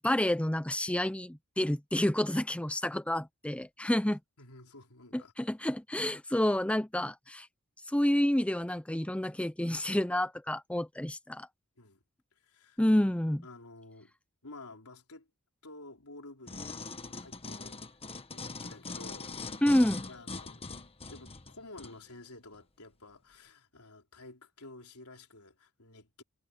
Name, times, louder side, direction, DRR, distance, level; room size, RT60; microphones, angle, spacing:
voice 1, 0.0-4.2 5.1-7.5 7.9-11.5 12.8-13.4 19.6-20.1, left 1 dB, 5° left, 0.6 m, -29 dB
voice 2, 4.4-5.3 11.8-12.0 12.3-12.8 13.4-14.1 14.4-15.3 15.6-16.8 17.1-17.8 18.3-19.3 20.1-20.6 21.1-26.2, left 2 dB, 80° left, 3.9 m, -51 dB
sound 1, 16.5-22.0 22.5-22.6, left 3 dB, 25° left, 1.4 m, -42 dB
head